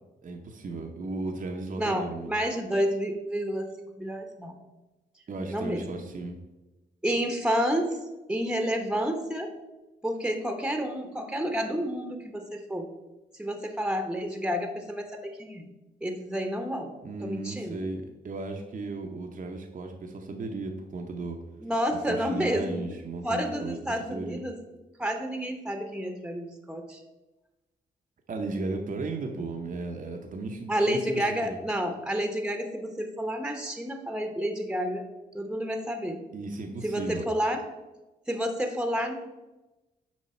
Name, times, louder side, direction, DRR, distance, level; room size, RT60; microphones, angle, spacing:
voice 1, 0.2-2.3 5.3-6.4 17.0-21.4 22.1-23.8 24.1-24.4 28.3-31.6 36.3-37.3, right 3 dB, 50° right, 2 dB, 0.9 m, -35 dB
voice 2, 1.8-4.5 5.5-5.8 7.0-8.0 8.3-9.5 10.0-12.9 13.3-15.7 16.0-16.9 17.2-17.8 21.6-22.8 23.2-24.6 25.0-27.0 30.7-35.0 35.3-36.2 36.8-37.6 38.3-39.1, equal, 5° right, 5 dB, 1.0 m, -30 dB
7.3 x 4.7 x 4.4 m, 1.1 s
supercardioid pair, 50°, 18 cm